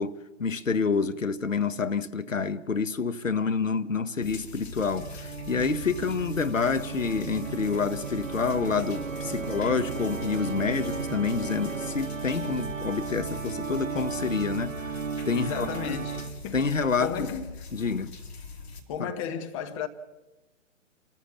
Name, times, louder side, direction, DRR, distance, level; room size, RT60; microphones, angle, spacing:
voice 1, 0.0-16.0 16.5-17.3 17.7-18.1 19.0-19.1, left 5 dB, 80° left, 1.1 m, -28 dB
sound 1, 4.2-18.8, left 4 dB, 55° left, 2.7 m, -43 dB
Organ, 4.8-16.6, right 5 dB, 85° right, 0.7 m, -35 dB
voice 2, 15.3-16.6 17.0-17.6 18.9-19.9, left 7 dB, 25° left, 1.2 m, -34 dB
28.0 x 13.5 x 7.3 m
figure-of-eight pair, 125°, 38 cm